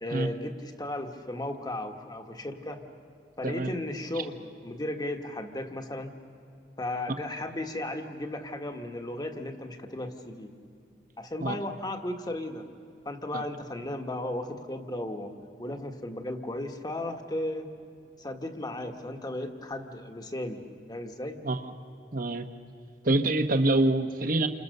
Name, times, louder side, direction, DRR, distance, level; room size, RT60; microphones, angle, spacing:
voice 1, 0.0-2.8 3.4-6.2 6.8-10.5 11.2-12.7 13.1-15.3 15.6-17.7 18.2-21.4, left 1 dB, 25° left, 5 dB, 1.6 m, -35 dB
voice 2, 22.1-22.5 23.0-24.5, right 2 dB, 50° right, 8 dB, 1.2 m, -25 dB
29.5 x 26.5 x 6.7 m, 2.5 s
head